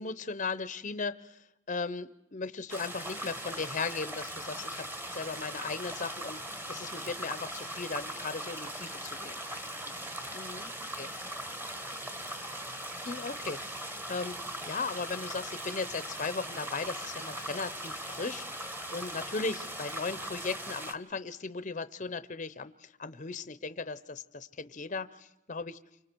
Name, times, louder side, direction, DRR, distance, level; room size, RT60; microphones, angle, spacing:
voice 1, 0.0-9.3 10.3-10.7 11.0-11.1 13.1-14.4 14.7-25.8, left 4 dB, 40° left, 13 dB, 0.7 m, -37 dB
sound 1, 2.7-20.9, right 1 dB, 10° right, 1.2 m, -40 dB
voice 2, 9.7-12.8, right 1 dB, 45° right, 0 dB, 5.7 m, -62 dB
29.5 x 25.0 x 4.6 m, 0.93 s
head